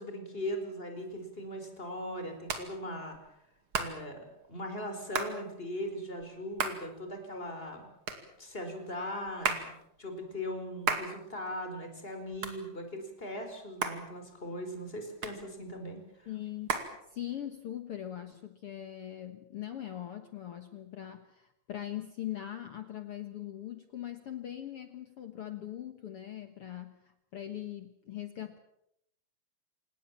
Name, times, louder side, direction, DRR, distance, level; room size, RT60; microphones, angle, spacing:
voice 1, 0.0-3.2 3.8-7.9 8.4-16.3, equal, 15° left, 5 dB, 4.5 m, -39 dB
Hands, 1.0-17.6, right 5 dB, 40° right, 2.6 m, -39 dB
voice 2, 16.3-16.8 17.1-28.6, left 12 dB, 80° left, 8 dB, 1.3 m, -41 dB
27.5 x 19.0 x 7.4 m, 0.78 s
omnidirectional pair, 4.6 m